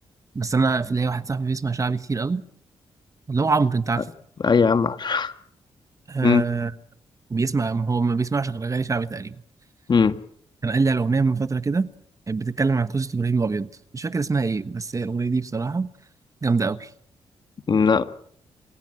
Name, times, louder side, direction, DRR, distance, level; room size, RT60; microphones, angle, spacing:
voice 1, 0.3-2.4 3.3-4.1 6.1-6.7 7.3-9.4 10.6-11.9 12.3-13.7 13.9-15.9 16.4-16.9, right 4 dB, 35° right, 13 dB, 1.2 m, -24 dB
voice 2, 4.4-5.3 6.2-6.5 9.9-10.2 17.7-18.0, left 5 dB, 45° left, 10 dB, 1.6 m, -19 dB
27.5 x 16.5 x 7.7 m, 0.66 s
cardioid pair, 75°, 10 cm